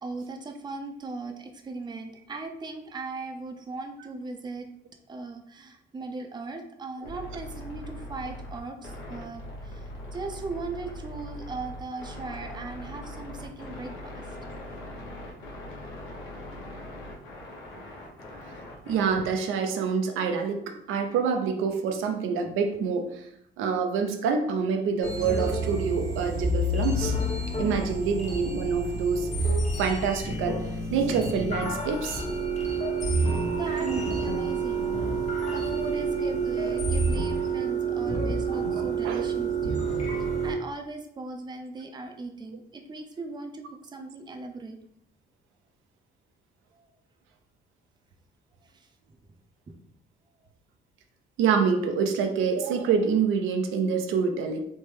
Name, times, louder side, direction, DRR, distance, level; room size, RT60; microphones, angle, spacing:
voice 1, 0.0-4.7 5.1-14.5 17.9-18.0 33.6-34.9 35.5-39.9 40.2-44.8 46.7-46.9 48.6-48.9 49.7-49.8, right 3 dB, 20° right, 4 dB, 0.4 m, -39 dB
sound 1, 7.0-19.3, left 1 dB, 85° left, 0.8 m, -41 dB
voice 2, 18.9-23.3 23.6-27.2 27.6-29.3 29.8-32.2 38.5-39.3 51.4-54.6, right 6 dB, 90° right, 6 dB, 0.4 m, -26 dB
sound 2, 25.0-40.5, right 3 dB, 35° left, 0.9 m, -28 dB
3.2 x 2.1 x 3.1 m, 0.71 s
cardioid pair, 90°, 20 cm